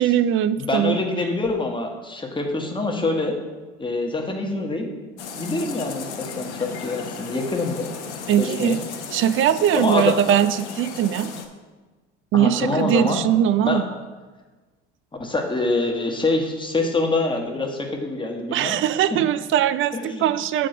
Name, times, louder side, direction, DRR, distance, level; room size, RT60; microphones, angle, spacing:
voice 1, 0.0-1.0 8.3-8.8 9.1-11.3 12.3-13.9 18.5-20.7, right 10 dB, 35° right, 14 dB, 0.4 m, -20 dB
voice 2, 0.6-3.4 3.8-4.9 5.4-7.9 8.4-8.8 9.7-10.2 12.3-13.2 13.6-13.8 15.2-18.8 19.1-19.2 19.9-20.3, left 2 dB, 15° left, 2 dB, 1.3 m, -25 dB
sound 1, 5.2-11.5, left 6 dB, 75° left, 0.9 m, -35 dB
7.6 x 3.7 x 6.5 m, 1.3 s
hypercardioid pair, 75°, 34 cm